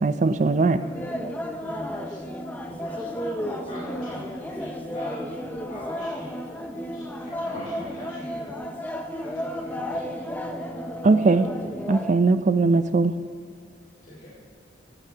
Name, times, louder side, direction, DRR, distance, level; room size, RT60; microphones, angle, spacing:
voice 1, 0.0-0.8 11.0-11.5 11.9-13.2, right 3 dB, 40° right, 12 dB, 0.4 m, -20 dB
sound 1, 0.8-12.1, equal, 10° left, 0.5 m, -33 dB
voice 2, 1.6-2.2 2.6-5.4 5.7-6.4 6.9-8.8 9.1-10.7 11.1-11.4 14.0-14.3, left 1 dB, 40° left, -10 dB, 2.2 m, -42 dB
15.5 x 8.9 x 2.9 m, 2.2 s
head